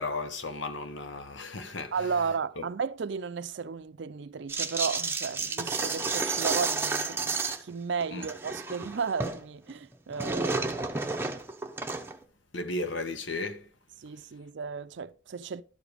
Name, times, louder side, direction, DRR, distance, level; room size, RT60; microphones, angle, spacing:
voice 1, 0.0-2.1 2.6-2.7 8.1-8.3 12.5-13.7, left 2 dB, 80° left, 1.1 m, -35 dB
voice 2, 1.9-10.9 14.0-15.6, right 5 dB, 70° right, 0.5 m, -34 dB
sound 1, 4.5-7.7 8.0-9.4 9.7-12.2, right 3 dB, 10° right, 0.8 m, -31 dB
12.5 x 5.0 x 4.9 m
head